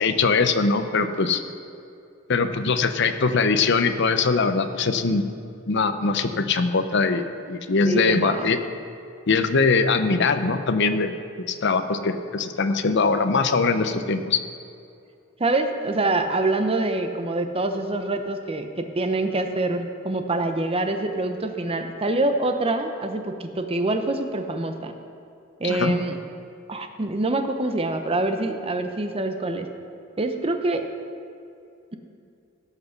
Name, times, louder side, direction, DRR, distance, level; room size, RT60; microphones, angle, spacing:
voice 1, 0.0-1.4 2.3-5.2 5.7-8.6 9.3-11.1 11.5-14.4 25.6-25.9, left 4 dB, 60° left, 9 dB, 0.7 m, -22 dB
voice 2, 7.8-8.5 15.4-24.9 25.6-26.2 26.7-29.7 30.2-30.9, right 2 dB, 30° right, 6 dB, 0.8 m, -25 dB
16.5 x 6.0 x 5.8 m, 2.6 s
head